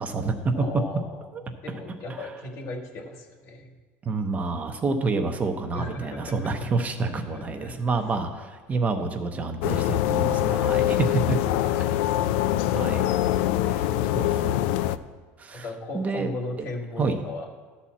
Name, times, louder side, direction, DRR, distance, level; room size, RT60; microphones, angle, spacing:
voice 1, 0.0-0.3 2.1-2.2 4.0-11.4 12.7-13.1 13.7-14.6 15.4-15.6 15.9-16.3 17.0-17.2, right 3 dB, 25° right, 5 dB, 0.7 m, -28 dB
voice 2, 0.5-3.7 5.7-6.7 7.0-8.0 10.7-11.0 11.5-12.6 15.5-17.5, left 2 dB, 50° left, 3 dB, 1.3 m, -37 dB
sound 1, 9.6-15.0, left 13 dB, 80° left, 0.4 m, -24 dB
11.5 x 4.2 x 7.3 m, 1.4 s
cardioid pair, 135°, 6 cm